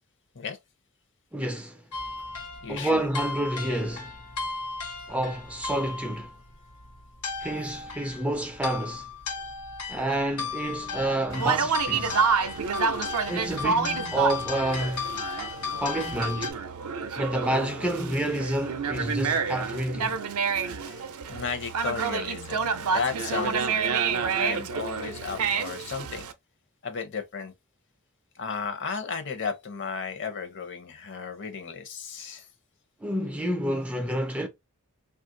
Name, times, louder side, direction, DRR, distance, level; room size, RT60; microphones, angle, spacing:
voice 1, 1.3-1.9 2.7-4.2 5.1-6.3 7.4-9.1 9.9-12.2 13.3-15.1 15.8-16.5 17.2-20.2 33.0-34.5, right 1 dB, 5° right, 0.3 m, -29 dB
sound 1, 1.9-16.5, left 4 dB, 90° left, 0.9 m, -36 dB
voice 2, 2.6-3.1 20.5-26.3 26.8-27.5 28.3-32.5, left 5 dB, 55° left, 0.7 m, -34 dB
Conversation, 11.3-26.3, right 5 dB, 75° right, 0.5 m, -29 dB
3.2 x 2.4 x 2.6 m
head